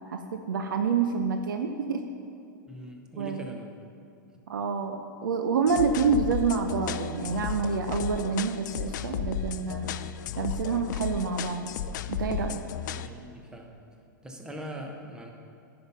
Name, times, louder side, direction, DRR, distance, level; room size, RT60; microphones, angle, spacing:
voice 1, 0.1-2.0 3.2-3.4 4.5-9.9 10.4-11.7 12.1-12.6, right 5 dB, 80° right, 6 dB, 0.7 m, -28 dB
voice 2, 2.7-3.7 12.8-13.7 14.2-15.3, right 1 dB, 5° right, 2 dB, 1.1 m, -41 dB
sound 1, 5.7-13.1, left 9 dB, 65° left, 0.4 m, -34 dB
10.5 x 5.8 x 5.5 m, 2.7 s
hypercardioid pair, 125°, 11 cm